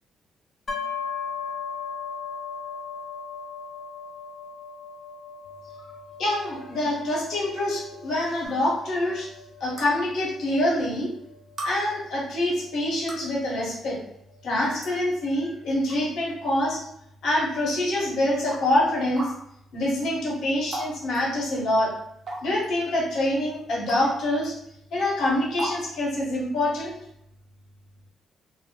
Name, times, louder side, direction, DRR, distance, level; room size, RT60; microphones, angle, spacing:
sound 1, 0.7-14.4, left 6 dB, 40° left, 0.5 m, -38 dB
voice 1, 6.2-9.3 9.6-11.1 11.6-14.0 14.4-16.8 17.2-19.3 19.7-21.9 22.4-24.5 24.9-26.9, left 1 dB, 70° left, -5 dB, 1.0 m, -25 dB
sound 2, 8.4-8.5 9.8-9.9 10.9-11.0 11.6-11.7 12.9-13.3 14.3-14.4 14.8-15.0 15.7-16.0 16.5-16.6 17.5-17.6 18.5-18.6 19.2-19.3 20.7-20.9 21.1-21.2 22.3-22.7 23.9-24.1 24.4-24.5 25.6-25.8, right 1 dB, 40° right, 0.6 m, -34 dB
2.1 x 2.0 x 2.8 m, 0.76 s
cardioid pair, 135°, 0 cm